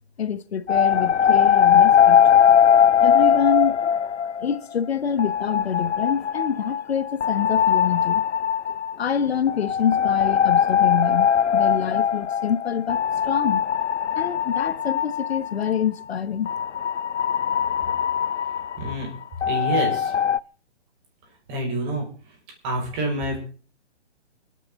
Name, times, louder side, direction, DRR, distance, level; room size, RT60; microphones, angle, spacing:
voice 1, 0.2-2.2 3.0-4.1 4.4-8.2 8.7-13.6 14.2-16.5, left 7 dB, 65° left, 1.1 m, -26 dB
sound 1, 0.7-4.8 5.2-15.8 16.5-20.4, left 8 dB, 85° left, 0.6 m, -20 dB
voice 2, 18.8-19.1 19.5-20.1 21.5-22.1 22.6-23.4, right 1 dB, 25° right, 6.0 m, -27 dB
29.0 x 9.8 x 3.9 m
hypercardioid pair, 140°, 34 cm